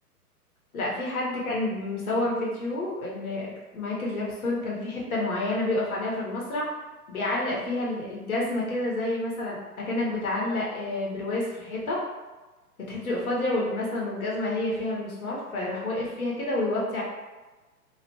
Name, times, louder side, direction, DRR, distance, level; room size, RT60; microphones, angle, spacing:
voice 1, 0.7-3.5 3.7-6.7 7.1-12.0 12.8-17.0, left 2 dB, 65° left, -4 dB, 0.9 m, -29 dB
2.4 x 2.1 x 3.0 m, 1.2 s
figure-of-eight pair, 115°, 47 cm